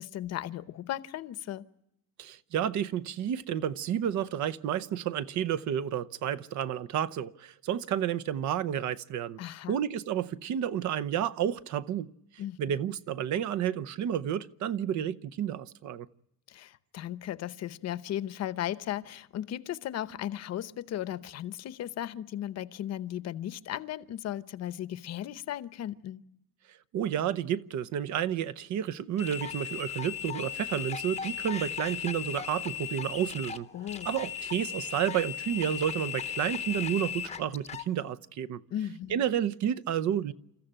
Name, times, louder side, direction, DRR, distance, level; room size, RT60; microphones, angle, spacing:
voice 1, 0.0-1.6 9.4-9.7 12.4-12.6 16.5-26.2 33.7-34.1 38.7-39.2, left 12 dB, 50° left, 0.8 m, -36 dB
voice 2, 2.2-9.4 9.7-12.1 12.6-16.1 26.9-33.7 34.0-38.6 39.1-40.3, right 10 dB, 55° right, 0.8 m, -31 dB
sound 1, 29.2-37.9, left 9 dB, 20° left, 0.8 m, -37 dB
28.0 x 14.5 x 8.9 m
cardioid pair, 160°, 34 cm